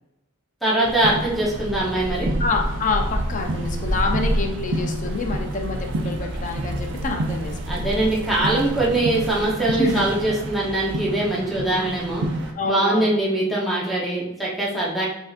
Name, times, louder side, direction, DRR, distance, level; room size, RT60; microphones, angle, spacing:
voice 1, 0.6-2.3 7.7-12.2 12.6-15.1, right 1 dB, ahead, -7 dB, 0.8 m, -22 dB
sound 1, 0.8-12.5, right 1 dB, 60° right, 0.5 m, -28 dB
voice 2, 2.4-7.9 9.8-10.1 12.6-13.1, left 3 dB, 40° left, 2 dB, 0.5 m, -27 dB
5.9 x 2.6 x 2.4 m, 0.87 s
head